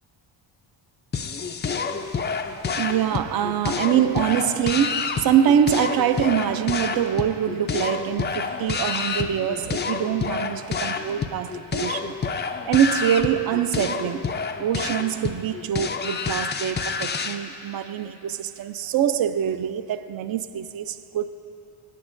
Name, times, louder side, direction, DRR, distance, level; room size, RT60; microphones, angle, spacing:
sound 1, 1.1-17.4, left 5 dB, 25° left, 0.3 m, -28 dB
voice 1, 2.8-12.1 12.7-14.3 14.6-21.3, right 9 dB, 50° right, 0.5 m, -24 dB
25.0 x 8.9 x 2.5 m
cardioid pair, 125°, 49 cm